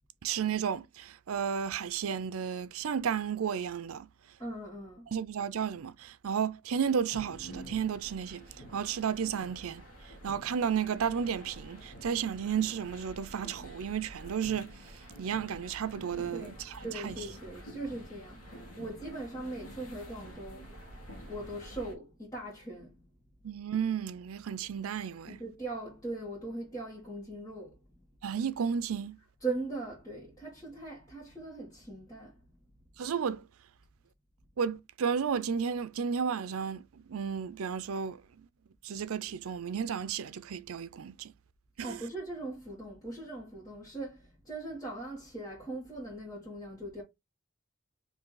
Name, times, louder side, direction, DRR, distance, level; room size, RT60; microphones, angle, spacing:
voice 1, 0.2-4.1 5.1-8.4 8.7-9.8 10.2-14.7 15.2-17.1 23.4-25.4 28.2-29.2 33.0-33.4 34.6-38.5 38.8-41.3 41.8-42.0, right 7 dB, 90° right, 0.5 m, -33 dB
voice 2, 4.4-5.1 16.3-20.7 21.3-23.0 25.2-27.8 29.4-32.3 41.8-47.0, right 2 dB, 15° left, 1.5 m, -40 dB
sound 1, 7.1-22.0, equal, 85° left, 1.4 m, -48 dB
4.6 x 2.7 x 3.9 m
head